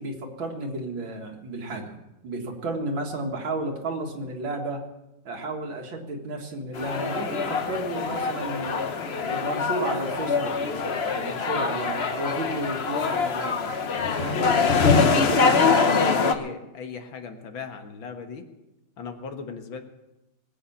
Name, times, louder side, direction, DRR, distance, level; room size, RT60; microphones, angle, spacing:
voice 1, 0.0-2.0 2.2-4.8 5.2-8.8 9.2-13.7 14.2-14.6 15.1-15.9, right 2 dB, 70° right, 2 dB, 2.7 m, -32 dB
sound 1, 6.8-16.3, left 5 dB, 45° left, 0.9 m, -24 dB
voice 2, 14.8-18.5 19.0-19.8, left 5 dB, 75° left, 5 dB, 2.2 m, -37 dB
19.5 x 8.5 x 7.2 m, 0.95 s
omnidirectional pair, 2.2 m